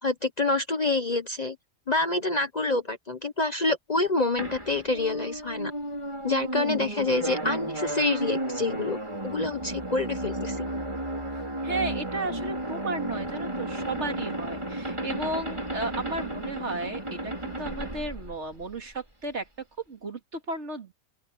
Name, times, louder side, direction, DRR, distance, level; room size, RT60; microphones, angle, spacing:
voice 1, 0.0-1.6 1.9-5.7 6.2-9.0 9.2-10.7, left 2 dB, 35° left, 0.9 m, -27 dB
sound 1, 4.4-18.9, right 1 dB, 20° right, 5.4 m, -33 dB
voice 2, 11.6-19.5 19.9-20.9, right 2 dB, 55° right, 2.6 m, -34 dB
open air
omnidirectional pair, 1.4 m